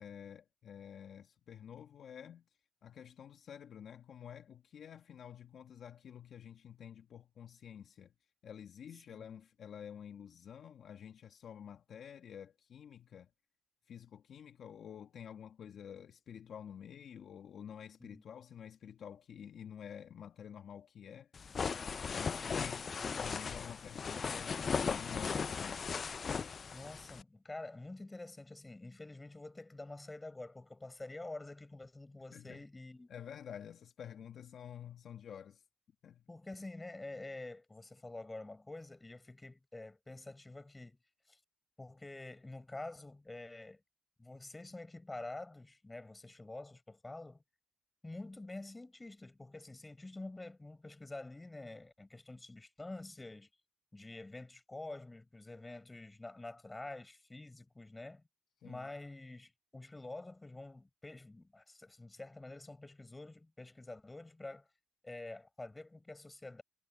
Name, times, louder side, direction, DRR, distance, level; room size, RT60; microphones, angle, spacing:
voice 1, 0.0-2.5 2.8-8.1 8.4-13.3 13.9-21.3 22.0-22.9 23.2-25.8 32.3-32.6 33.1-35.6 36.0-36.3 58.6-58.9, left 8 dB, 60° left, 1.4 m, -50 dB
sound 1, 21.3-27.2, left 6 dB, 40° left, 0.4 m, -37 dB
voice 2, 26.7-33.1 36.3-41.0 41.3-41.4 41.8-43.8 44.2-47.4 48.0-53.5 53.9-58.2 58.6-64.7 65.0-66.6, left 2 dB, 15° left, 7.7 m, -48 dB
cardioid pair, 90°, 0 cm